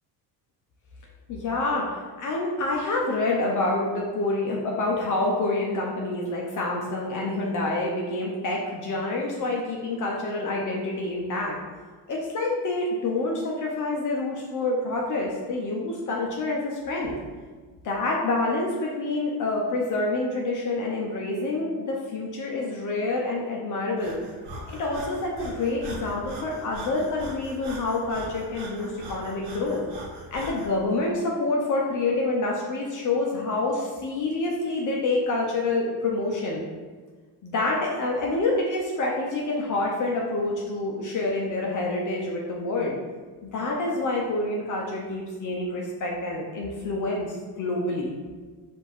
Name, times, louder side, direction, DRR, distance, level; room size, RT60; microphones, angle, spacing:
voice 1, 1.3-11.6 12.1-17.2 17.8-24.2 24.7-29.8 30.3-36.6 37.4-43.0 43.4-48.1, left 2 dB, 50° left, -2 dB, 0.7 m, -27 dB
Breathing, 24.0-30.7, right 1 dB, 85° right, 1.2 m, -40 dB
4.4 x 2.6 x 4.3 m, 1.4 s
cardioid pair, 105°, 41 cm